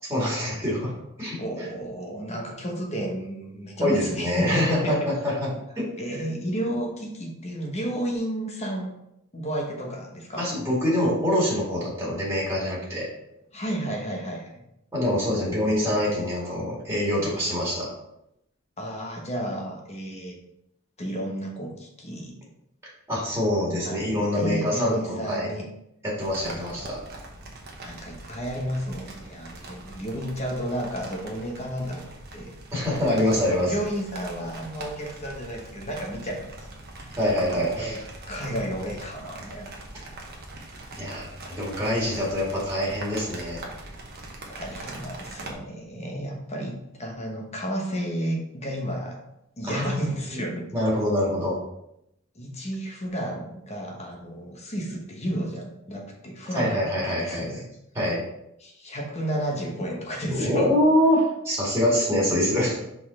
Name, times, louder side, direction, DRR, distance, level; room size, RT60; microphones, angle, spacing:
voice 1, 0.1-0.9 1.2-1.4 3.8-5.5 5.8-5.9 10.4-13.1 14.9-17.9 23.1-25.5 26.0-27.0 32.7-33.7 37.2-38.0 41.0-43.6 49.6-50.1 50.7-51.6 56.5-57.5 57.9-58.2 60.3-62.8, left 1 dB, 15° right, -5 dB, 2.3 m, -25 dB
voice 2, 1.3-5.0 6.0-8.9 9.3-10.5 13.5-14.5 18.8-20.4 21.0-22.3 23.8-24.0 24.3-25.7 26.5-26.8 27.8-32.1 32.3-32.5 32.9-36.7 37.0-37.1 37.5-38.0 38.3-40.1 44.5-49.2 49.6-50.6 52.3-57.6 58.6-60.7, right 1 dB, 30° left, 0 dB, 1.2 m, -32 dB
sound 1, 26.2-45.5, right 2 dB, 45° right, 1.1 m, -42 dB
5.6 x 4.2 x 4.2 m, 0.81 s
head